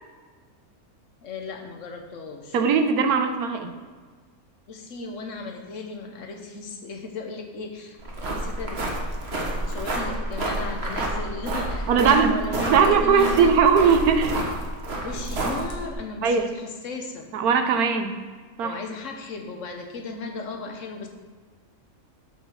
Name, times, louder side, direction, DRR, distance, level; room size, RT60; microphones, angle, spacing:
voice 1, 1.2-2.6 4.7-8.0 8.3-8.8 9.5-13.5 15.0-17.3 18.6-21.1, left 2 dB, 60° left, 4 dB, 1.2 m, -35 dB
voice 2, 2.5-3.7 11.9-12.3 12.6-14.4 16.2-16.5 17.3-18.1 18.6-18.8, right 6 dB, 85° right, 7 dB, 1.3 m, -19 dB
sound 1, 8.0-15.9, right 1 dB, 45° right, 1.4 m, -29 dB
6.7 x 5.6 x 6.3 m, 1.5 s
omnidirectional pair, 1.5 m